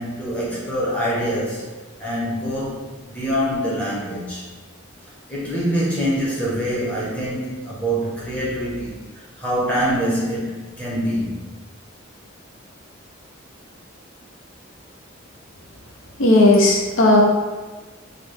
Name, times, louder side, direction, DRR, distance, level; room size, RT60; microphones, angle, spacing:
voice 1, 0.0-1.7 2.0-4.5 5.3-11.5, equal, 5° left, -7 dB, 1.1 m, -25 dB
voice 2, 16.2-17.2, left 2 dB, 70° left, 0 dB, 0.7 m, -14 dB
5.7 x 2.5 x 3.4 m, 1.3 s
head